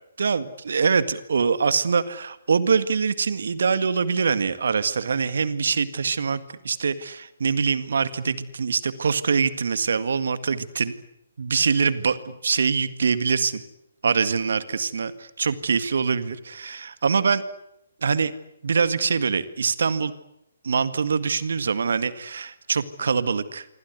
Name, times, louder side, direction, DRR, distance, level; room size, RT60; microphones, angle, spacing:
voice 1, 0.2-10.9 11.4-13.6 14.0-17.4 18.0-18.3 18.6-20.1 20.6-23.7, right 5 dB, 60° right, 13 dB, 1.9 m, -24 dB
27.0 x 25.0 x 8.3 m, 0.83 s
figure-of-eight pair, 135°, 0 cm